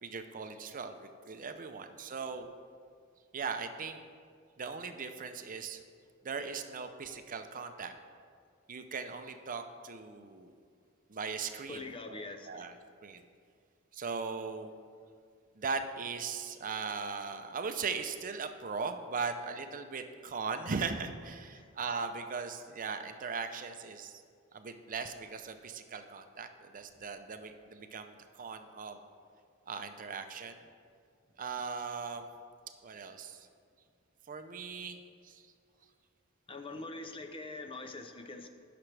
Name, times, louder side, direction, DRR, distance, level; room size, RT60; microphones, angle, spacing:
voice 1, 0.0-2.5 3.3-4.0 4.6-5.8 6.2-7.9 8.7-10.5 11.1-11.8 12.1-12.2 12.5-12.7 13.0-13.2 13.9-14.7 15.6-24.2 24.5-29.0 29.7-30.6 31.4-32.3 32.8-33.4 34.3-35.0 35.2-35.4, right 5 dB, 40° right, 7 dB, 0.6 m, -39 dB
voice 2, 11.7-12.8 21.5-21.7 36.5-38.5, left 3 dB, 25° left, 7 dB, 0.6 m, -44 dB
16.5 x 5.9 x 3.3 m, 2.1 s
head